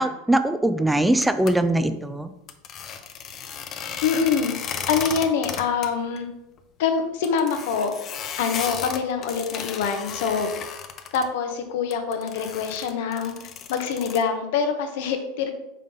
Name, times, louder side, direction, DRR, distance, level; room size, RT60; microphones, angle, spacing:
voice 1, 0.0-2.3, right 1 dB, 5° right, 10 dB, 0.5 m, -21 dB
sound 1, 1.2-1.5 2.5-5.9 6.2-6.3 6.6-6.7 7.2-11.3 11.9-14.2, left 7 dB, 40° left, 0.7 m, -34 dB
voice 2, 3.8-6.3 6.8-7.9 8.4-10.5 11.1-13.3 13.7-15.5, left 6 dB, 70° left, 6 dB, 1.1 m, -25 dB
5.3 x 3.8 x 5.5 m, 0.92 s
hypercardioid pair, 100°, 0 cm